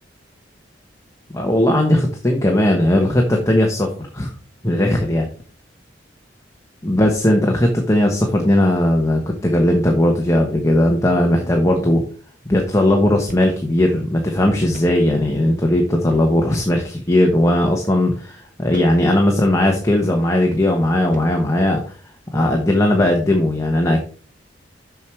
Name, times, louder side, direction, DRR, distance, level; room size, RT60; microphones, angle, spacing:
voice 1, 1.3-3.9 4.1-4.3 4.6-5.3 6.8-12.0 12.4-21.8 22.3-24.0, left 1 dB, 15° left, 1 dB, 1.1 m, -17 dB
Hand elbow impact on tile porcelain bathroom sink, 13.3-13.6 13.9-14.0 14.7-15.0 16.5-16.9 17.5-17.7 18.7-19.1 19.8-20.0 21.0-21.4, right 2 dB, 45° right, 1.2 m, -38 dB
7.0 x 6.2 x 4.6 m, 0.40 s
head